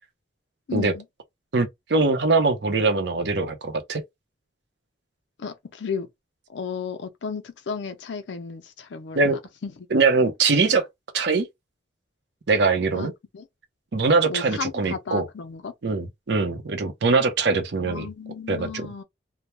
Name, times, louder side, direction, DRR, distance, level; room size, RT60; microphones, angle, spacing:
voice 1, 0.7-1.0 5.4-6.1 6.5-10.0 12.9-13.5 14.3-15.7 17.8-19.0, left 5 dB, 85° left, 0.5 m, -34 dB
voice 2, 1.5-4.0 9.1-9.4 9.9-10.9 11.1-11.5 12.5-13.1 13.9-15.2 15.8-18.1 18.5-18.9, right 3 dB, 70° right, 0.6 m, -22 dB
2.2 x 2.1 x 2.9 m
head